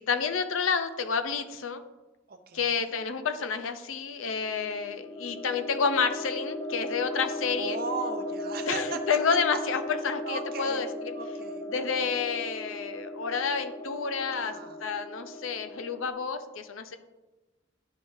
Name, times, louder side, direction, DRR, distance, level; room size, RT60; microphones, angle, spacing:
voice 1, 0.0-1.8 2.5-7.8 8.7-11.1 11.7-17.0, left 5 dB, 85° left, 9 dB, 0.5 m, -30 dB
voice 2, 2.3-3.0 7.6-9.0 10.3-10.9 11.1-12.0 14.3-14.8, right 4 dB, 45° right, 6 dB, 0.6 m, -38 dB
sound 1, 4.2-16.1, left 1 dB, 25° left, 0.4 m, -37 dB
10.0 x 3.7 x 2.6 m, 1.1 s
head